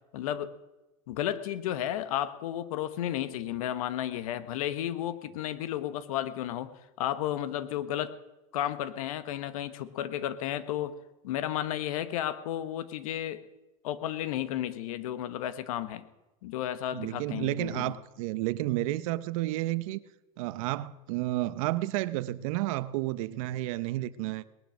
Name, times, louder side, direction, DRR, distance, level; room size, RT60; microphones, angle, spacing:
voice 1, 0.1-0.5 1.1-6.7 7.0-8.1 8.5-10.9 11.2-13.4 13.8-16.0 16.4-17.9, left 11 dB, 80° left, 1.2 m, -33 dB
voice 2, 16.9-20.0 20.4-24.4, right 16 dB, 70° right, 0.8 m, -31 dB
19.5 x 10.5 x 6.3 m
supercardioid pair, 120°, 18 cm